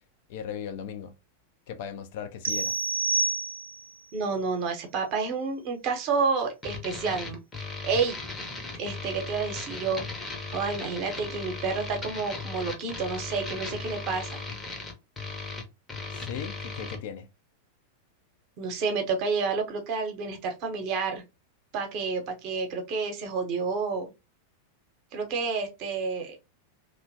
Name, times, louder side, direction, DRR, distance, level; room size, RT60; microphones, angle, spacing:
voice 1, 0.3-1.1 1.7-2.8 16.1-17.3, left 8 dB, 50° left, 0.4 m, -37 dB
sound 1, 2.4-4.0, right 3 dB, 70° right, 0.5 m, -28 dB
voice 2, 4.1-8.2 8.7-10.0 10.5-14.4 18.6-21.2 21.7-24.1 25.1-26.4, right 4 dB, 40° right, 0.8 m, -30 dB
sound 2, 6.6-17.0, left 3 dB, 15° left, 0.7 m, -37 dB
2.9 x 2.2 x 2.6 m
figure-of-eight pair, 90°, 0 cm